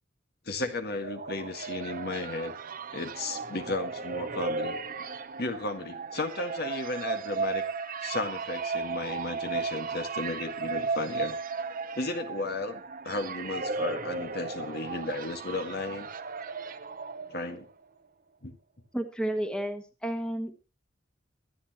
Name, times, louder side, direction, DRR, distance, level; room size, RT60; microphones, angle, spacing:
voice 1, 0.5-2.5 2.9-4.8 5.4-7.6 8.0-11.4 12.0-16.1 17.3-17.7 18.4-18.5, left 2 dB, 55° left, 6 dB, 1.8 m, -34 dB
sound 1, 0.7-17.7, right 4 dB, 50° right, 0.9 m, -35 dB
voice 2, 18.9-20.5, right 1 dB, 5° left, 6 dB, 1.5 m, -31 dB
24.0 x 10.0 x 3.0 m, 0.32 s
head